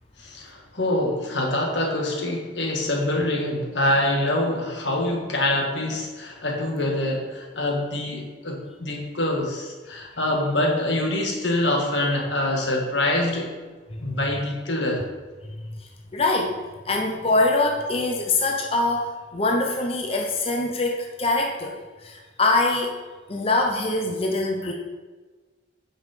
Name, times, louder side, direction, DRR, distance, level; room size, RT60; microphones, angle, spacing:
voice 1, 0.2-13.5 14.0-15.1, left 1 dB, 70° left, 1 dB, 1.8 m, -25 dB
voice 2, 15.6-16.6 16.9-21.8 22.0-23.0 23.3-24.7, left 2 dB, 30° left, 2 dB, 0.7 m, -24 dB
9.7 x 5.6 x 5.0 m, 1.3 s
head